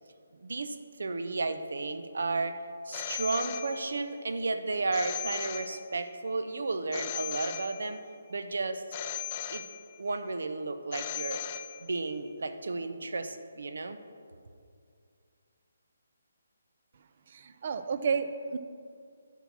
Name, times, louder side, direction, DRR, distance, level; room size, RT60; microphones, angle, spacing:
voice 1, 0.4-2.6 2.9-8.0 8.3-8.8 9.5-9.7 10.0-11.4 11.8-14.0, right 3 dB, 75° right, 9 dB, 0.8 m, -33 dB
Telephone, 2.9-4.2 4.9-6.2 6.9-8.2 8.9-10.2 10.9-12.2, left 10 dB, 25° left, 0.4 m, -38 dB
voice 2, 17.3-18.6, right 5 dB, 40° right, 11 dB, 0.6 m, -31 dB
11.0 x 5.8 x 6.0 m, 2.3 s
hypercardioid pair, 170°, 0 cm